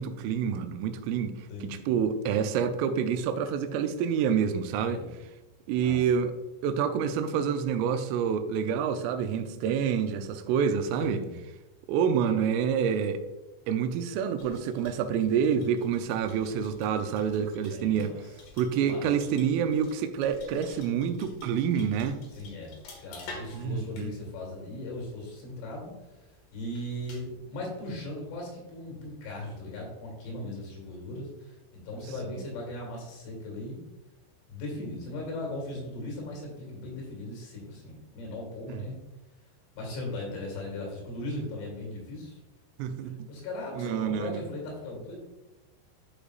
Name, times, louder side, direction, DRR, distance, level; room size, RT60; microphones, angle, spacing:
voice 1, 0.0-5.0 5.7-6.3 6.6-11.3 11.9-13.2 13.7-18.2 18.6-22.2 23.5-24.1 32.3-32.4 38.7-38.9 42.8-43.2 43.7-44.4, right 7 dB, 90° right, 8 dB, 3.2 m, -28 dB
voice 2, 1.5-1.8 4.9-5.2 5.8-6.0 11.0-11.4 17.7-18.2 18.8-19.1 22.4-25.9 26.5-31.6 31.8-33.8 34.5-39.0 39.8-42.4 43.0-45.2, left 1 dB, 75° left, -1 dB, 4.6 m, -38 dB
sound 1, 14.4-27.4, left 2 dB, 60° left, 2.4 m, -51 dB
12.5 x 5.0 x 2.4 m, 1.1 s
omnidirectional pair, 5.7 m